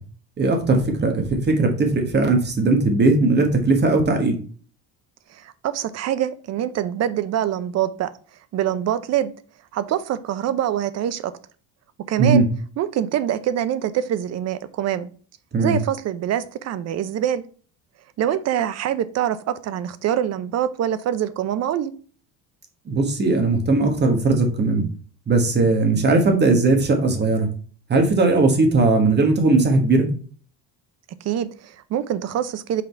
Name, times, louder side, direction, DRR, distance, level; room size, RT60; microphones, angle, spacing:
voice 1, 0.4-4.4 12.2-12.4 15.5-15.8 22.9-24.8 25.3-27.5 27.9-30.1, right 3 dB, 25° right, 4 dB, 1.4 m, -18 dB
voice 2, 5.3-8.1 8.5-9.3 9.7-11.3 12.1-12.4 12.8-15.1 15.6-17.4 18.2-21.9 31.2-32.8, right 10 dB, 45° right, 14 dB, 0.6 m, -24 dB
5.9 x 3.8 x 4.4 m, 0.42 s
cardioid pair, 135°, 37 cm